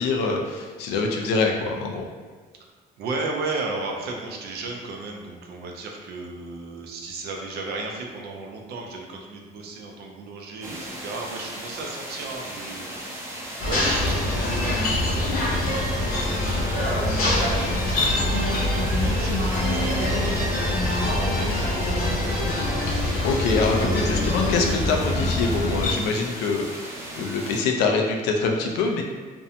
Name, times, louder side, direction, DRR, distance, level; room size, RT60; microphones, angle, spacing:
voice 1, 0.0-2.0 23.2-29.0, left 4 dB, 90° left, 1 dB, 0.4 m, -25 dB
voice 2, 3.0-13.4 13.6-22.3, right 3 dB, 70° right, 1 dB, 0.5 m, -35 dB
sound 1, 10.6-27.6, right 1 dB, 15° right, 0.6 m, -37 dB
sound 2, 13.6-25.9, left 1 dB, 55° left, 0.8 m, -24 dB
2.6 x 2.1 x 2.7 m, 1.5 s
cardioid pair, 110°, 17 cm